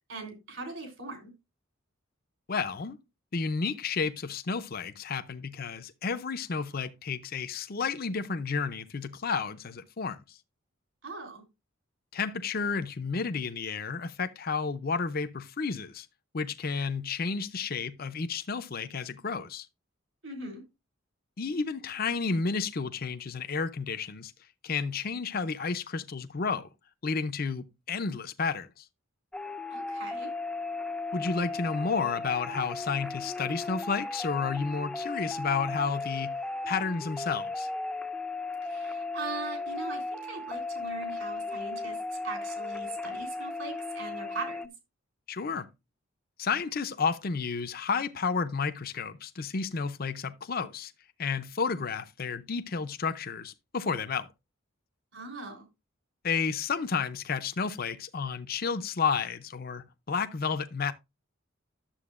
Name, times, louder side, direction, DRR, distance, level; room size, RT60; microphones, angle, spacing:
voice 1, 0.1-1.3 11.0-11.4 20.2-20.6 29.7-30.3 38.6-44.7 55.1-55.7, right 3 dB, 65° right, 3.4 m, -40 dB
voice 2, 2.5-3.0 3.3-10.2 12.1-16.1 16.3-19.7 21.4-24.3 24.6-26.7 27.0-28.8 31.1-36.3 36.7-37.7 45.3-45.7 46.4-50.9 51.2-54.3 56.2-60.9, left 5 dB, 45° left, 0.6 m, -31 dB
sound 1, 29.3-44.7, left 3 dB, 5° left, 0.5 m, -36 dB
11.5 x 7.6 x 2.4 m
head